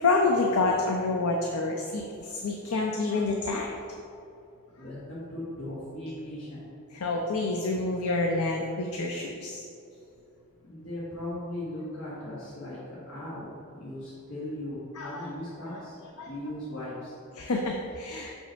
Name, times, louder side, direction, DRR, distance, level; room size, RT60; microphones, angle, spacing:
voice 1, 0.0-3.7 7.0-9.6 15.0-15.2 16.2-16.3 17.4-18.3, left 3 dB, 85° left, 1 dB, 0.6 m, -28 dB
voice 2, 4.7-6.6 10.6-16.0 16.2-17.2, left 1 dB, 60° left, -9 dB, 1.5 m, -38 dB
5.9 x 5.4 x 4.4 m, 2.6 s
head